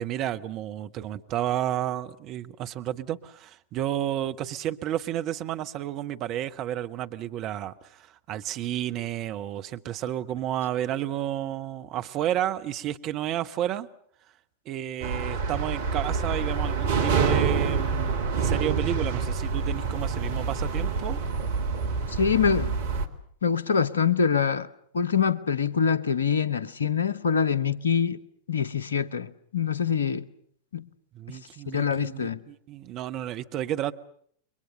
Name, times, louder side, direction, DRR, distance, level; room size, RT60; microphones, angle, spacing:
voice 1, 0.0-13.9 14.7-21.2 31.1-33.9, right 12 dB, 35° right, 1.1 m, -31 dB
sound 1, 15.0-23.1, right 5 dB, 60° right, 2.1 m, -27 dB
voice 2, 22.1-22.7 23.4-28.2 28.5-30.3 30.7-30.9 31.3-31.4 31.7-32.4, left 6 dB, 70° left, 1.1 m, -25 dB
30.0 x 23.0 x 6.7 m
figure-of-eight pair, 90°, 0 cm